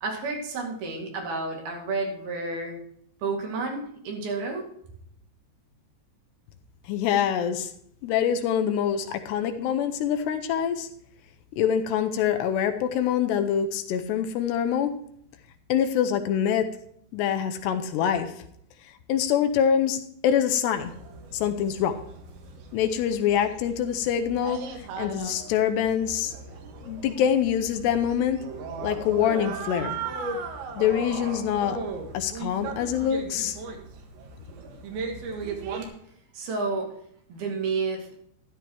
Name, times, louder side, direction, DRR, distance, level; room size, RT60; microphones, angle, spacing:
voice 1, 0.0-2.8 3.2-4.7 36.3-36.9 37.3-38.1, right 3 dB, 60° right, 1 dB, 4.0 m, -30 dB
voice 2, 6.9-7.7 8.0-10.9 11.6-15.0 15.7-16.8 17.1-18.4 19.1-20.9 21.3-22.0 22.7-26.3 26.8-28.5 28.8-30.0 30.8-31.8 32.1-33.6, left 9 dB, 80° left, 7 dB, 2.8 m, -25 dB
sound 1, 20.8-35.9, right 4 dB, 90° right, 4.0 m, -37 dB
13.5 x 11.5 x 3.0 m, 0.68 s
omnidirectional pair, 5.0 m